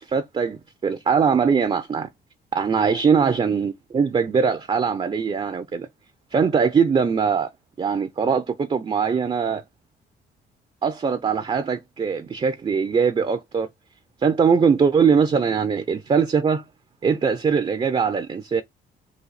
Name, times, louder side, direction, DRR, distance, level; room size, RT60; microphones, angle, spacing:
voice 1, 0.1-2.1 2.5-5.9 6.3-7.5 7.8-9.6 10.8-13.7 14.2-16.6 17.0-18.6, right 6 dB, 30° right, 0.6 m, -21 dB
4.1 x 2.7 x 4.0 m
cardioid pair, 90°, 20 cm